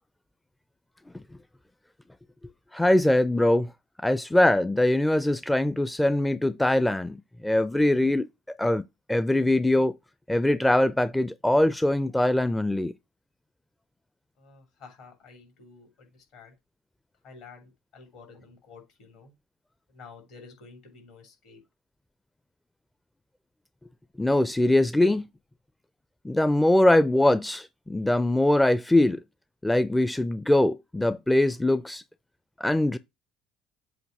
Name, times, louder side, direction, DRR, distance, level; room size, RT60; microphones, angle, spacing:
voice 1, 2.7-3.7 4.0-8.3 8.6-8.8 9.1-9.9 10.3-12.9 24.2-25.3 26.2-29.2 29.6-32.0 32.6-33.0, left 1 dB, 10° left, 0.4 m, -22 dB
voice 2, 14.4-16.5 17.2-19.3 19.9-21.6, left 4 dB, 65° left, 2.9 m, -50 dB
7.8 x 2.8 x 5.8 m
hypercardioid pair, 60°, 0 cm